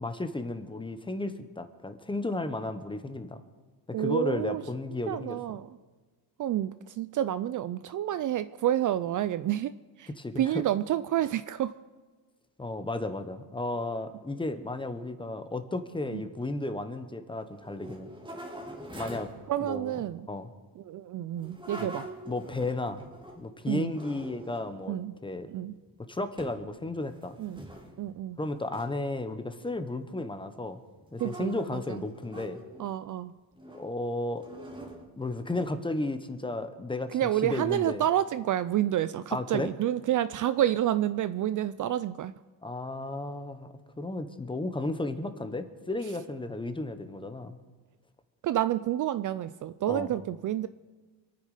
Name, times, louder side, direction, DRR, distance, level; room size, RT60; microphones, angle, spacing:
voice 1, 0.0-3.4 3.9-5.4 10.2-10.6 12.6-18.1 18.9-19.3 19.6-20.0 20.3-20.5 21.8-21.9 22.2-23.0 23.4-25.0 25.2-25.5 26.1-27.4 28.4-30.8 31.1-32.6 33.7-34.4 35.2-38.0 39.3-39.7 42.6-47.6 49.9-50.1, left 2 dB, 10° left, 9 dB, 1.1 m, -34 dB
voice 2, 3.9-4.6 5.1-5.8 6.4-10.1 10.4-11.7 16.1-16.2 19.5-20.3 20.8-22.1 23.7-23.9 24.9-25.1 25.5-25.7 27.4-27.6 28.0-28.4 31.2-32.0 32.8-33.3 37.1-42.3 48.4-50.7, right 12 dB, 50° right, 15 dB, 0.5 m, -29 dB
sound 1, 17.5-19.5 21.3-23.5 23.9-24.8 25.4-25.9 26.4-26.7 27.0-28.2 28.7-28.8 31.0-32.9 33.6-33.9 34.4-36.0, right 1 dB, 10° right, 2.4 m, -45 dB
26.5 x 9.5 x 5.0 m, 1.3 s
cardioid pair, 130°, 42 cm